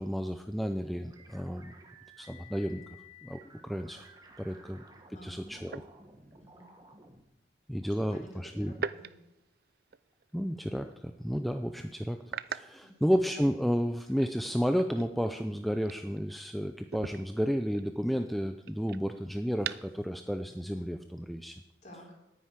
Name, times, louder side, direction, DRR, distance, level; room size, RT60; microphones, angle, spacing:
voice 1, 0.0-1.7 2.2-2.8 3.2-4.1 4.4-4.8 5.2-5.8 7.7-8.7 10.3-12.2 12.5-21.6, equal, ahead, 6 dB, 0.5 m, -32 dB
sound 1, 1.1-7.2, left 1 dB, 20° right, 1.5 m, -55 dB
sound 2, 4.3-4.4 5.6-6.5 8.7-10.3 10.7-11.0 11.4-11.5 12.2-13.7 14.1-16.5 16.9-20.1, right 6 dB, 55° right, 0.5 m, -43 dB
voice 2, 5.1-5.8 6.4-6.7 8.1-8.3 8.6-9.1 12.8-13.1 21.8-22.2, equal, 40° left, -2 dB, 4.3 m, -52 dB
9.9 x 9.4 x 9.8 m, 0.94 s
head